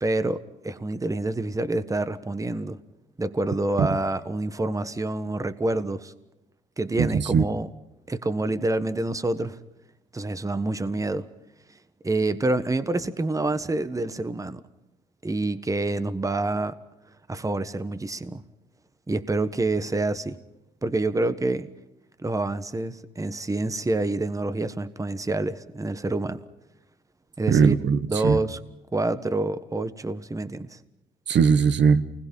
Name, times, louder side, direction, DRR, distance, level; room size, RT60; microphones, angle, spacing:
voice 1, 0.0-2.8 3.2-6.1 6.8-7.7 8.1-9.6 10.1-11.3 12.0-14.6 15.2-16.8 17.3-18.4 19.1-20.4 20.8-21.7 22.2-26.4 27.4-27.8 28.1-28.6 28.9-30.8, right 2 dB, 15° right, 1.4 m, -27 dB
voice 2, 7.0-7.4 27.5-28.4 31.3-32.0, right 6 dB, 65° right, 1.5 m, -20 dB
29.0 x 21.0 x 5.6 m
cardioid pair, 90°, 20 cm